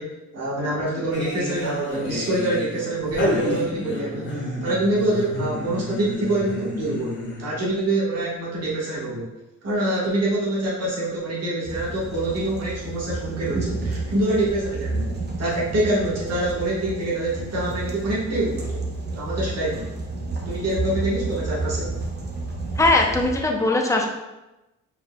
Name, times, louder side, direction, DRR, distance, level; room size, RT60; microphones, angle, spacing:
voice 1, 0.0-9.3 9.6-15.1 15.4-18.9 19.1-20.0 20.4-22.0, right 1 dB, 55° right, -6 dB, 1.5 m, -25 dB
sound 1, 1.1-7.6, equal, 40° left, 1.5 m, -29 dB
sound 2, 11.6-23.4, right 3 dB, 35° right, 0.8 m, -31 dB
voice 2, 22.8-24.1, left 2 dB, 10° left, 1 dB, 0.6 m, -20 dB
4.4 x 4.3 x 2.3 m, 1.0 s
cardioid pair, 90°, 30 cm